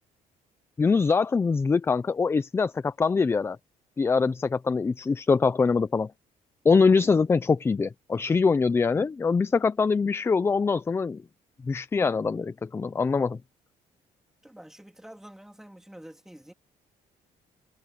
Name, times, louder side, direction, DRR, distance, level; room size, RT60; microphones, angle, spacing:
voice 1, 0.8-3.6 4.0-6.1 6.6-11.2 11.6-13.4, left 4 dB, 15° left, 0.5 m, -23 dB
voice 2, 14.4-16.5, right 1 dB, 5° right, 2.8 m, -47 dB
cardioid pair, 145°, 14 cm